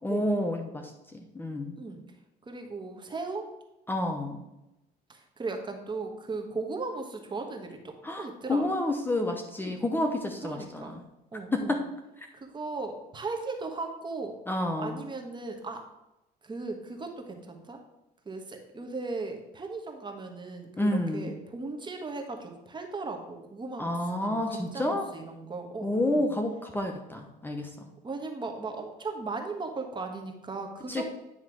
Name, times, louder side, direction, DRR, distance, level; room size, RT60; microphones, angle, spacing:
voice 1, 0.0-1.8 3.9-4.4 8.0-11.0 11.5-11.8 12.2-12.3 14.5-15.0 20.8-21.4 23.8-25.1 25.8-27.9 30.9-31.0, left 1 dB, 10° left, 3 dB, 0.8 m, -30 dB
voice 2, 2.5-3.5 5.1-8.7 9.6-9.9 10.4-10.9 11.3-11.8 12.3-14.3 14.8-15.8 16.4-17.8 18.2-26.3 28.0-31.0, right 3 dB, 25° right, 4 dB, 1.3 m, -37 dB
9.6 x 3.2 x 6.1 m, 0.93 s
cardioid pair, 110°, 17 cm